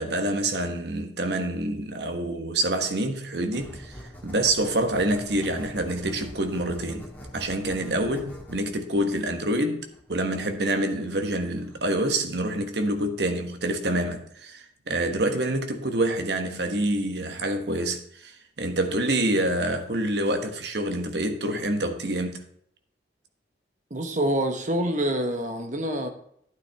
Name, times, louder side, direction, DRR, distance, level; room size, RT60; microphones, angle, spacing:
voice 1, 0.0-7.1 7.3-22.4, right 1 dB, 70° right, 1.3 m, -27 dB
sound 1, 3.5-12.0, equal, 10° left, 2.4 m, -45 dB
voice 2, 23.9-26.1, right 1 dB, 45° right, 1.2 m, -26 dB
12.0 x 9.6 x 3.5 m
head